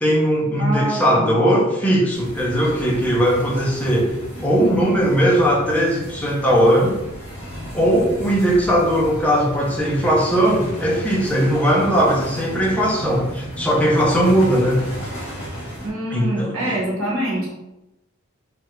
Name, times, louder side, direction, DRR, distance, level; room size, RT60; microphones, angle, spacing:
voice 1, 0.0-7.0 7.7-14.8 16.1-16.9, equal, 5° left, -3 dB, 0.6 m, -19 dB
voice 2, 0.6-1.3 15.8-17.5, right 1 dB, 70° right, -4 dB, 1.1 m, -25 dB
sound 1, 2.1-15.9, equal, 25° left, 1.1 m, -34 dB
3.1 x 2.4 x 3.0 m, 0.90 s
head